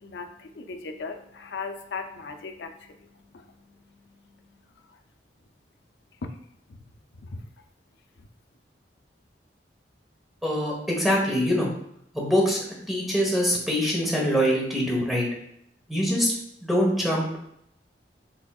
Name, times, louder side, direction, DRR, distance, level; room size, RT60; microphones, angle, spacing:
voice 1, 0.0-3.0 3.3-3.4 6.2-6.3 7.3-7.5, left 4 dB, 70° left, 6 dB, 0.5 m, -37 dB
voice 2, 10.4-11.7 12.1-15.3 15.9-16.3 16.6-17.4, equal, ahead, -3 dB, 1.1 m, -24 dB
5.9 x 3.5 x 2.3 m, 0.75 s
head